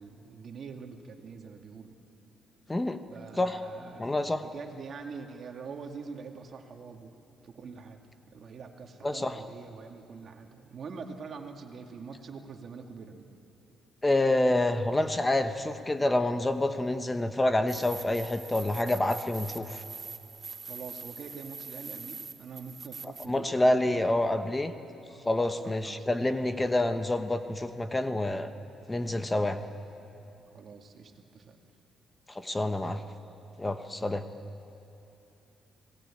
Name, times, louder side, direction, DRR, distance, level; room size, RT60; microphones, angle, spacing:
voice 1, 0.0-1.9 3.1-4.1 4.4-7.2 7.4-8.0 8.3-13.4 20.6-24.0 25.1-26.1 30.5-31.6, right 5 dB, 55° right, 3 dB, 2.2 m, -44 dB
voice 2, 2.7-3.0 3.4-3.6 4.0-4.4 9.0-9.4 14.0-19.8 23.3-24.7 25.2-28.5 28.9-29.6 32.3-33.0 33.6-34.2, left 1 dB, 15° left, 8 dB, 1.1 m, -27 dB
sound 1, 17.7-23.3, right 5 dB, 40° right, 1.2 m, -43 dB
26.0 x 19.0 x 8.7 m, 2.9 s
cardioid pair, 90°, 0 cm